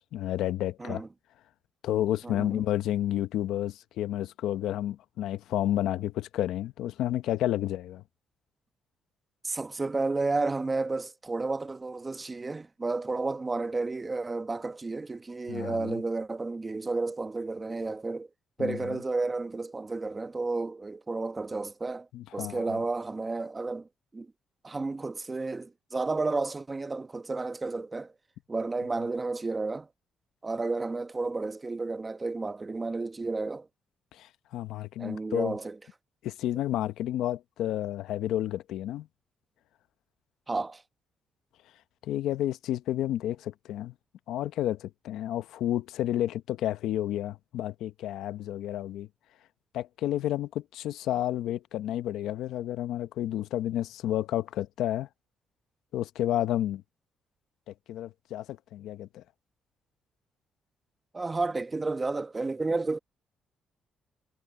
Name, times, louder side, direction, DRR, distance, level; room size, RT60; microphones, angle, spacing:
voice 1, 0.1-1.0 1.8-8.0 15.5-16.0 18.6-19.0 22.1-22.8 34.1-35.6 36.2-39.1 42.0-43.9 44.3-49.1 49.7-55.1 55.9-56.8 57.7-59.2, left 12 dB, 85° left, 0.8 m, -31 dB
voice 2, 2.2-2.6 9.4-18.3 18.6-23.9 24.1-24.3 24.6-28.1 28.5-29.9 30.4-33.7 35.0-35.8 40.5-40.8 61.1-63.0, right 3 dB, 25° right, 1.3 m, -32 dB
cardioid pair, 90°, 0 cm